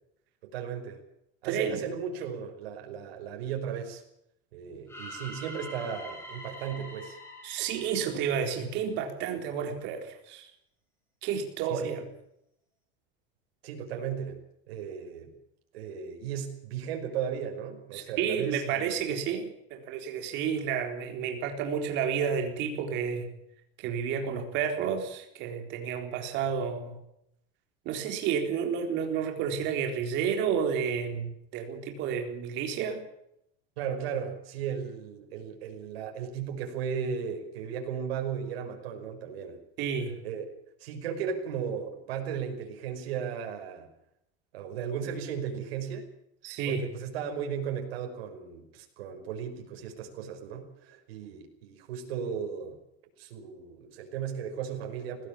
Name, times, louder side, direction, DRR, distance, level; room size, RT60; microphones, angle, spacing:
voice 1, 0.4-1.0 1.4-4.0 4.5-7.2 11.7-12.0 13.6-14.4 14.7-15.3 15.7-19.1 33.8-39.6 40.2-40.5 40.8-43.9 44.5-46.1 46.7-52.8 53.2-55.3, right 7 dB, 90° right, 3 dB, 5.3 m, -36 dB
voice 2, 1.4-1.8 7.4-10.5 11.2-12.0 17.9-23.3 23.8-27.0 27.9-33.0 39.8-40.2 46.4-46.9, right 7 dB, 35° right, 4 dB, 4.0 m, -31 dB
sound 1, 4.9-8.9, equal, 10° left, 4.5 m, -45 dB
20.0 x 16.5 x 8.8 m, 0.78 s
supercardioid pair, 175°, 30 cm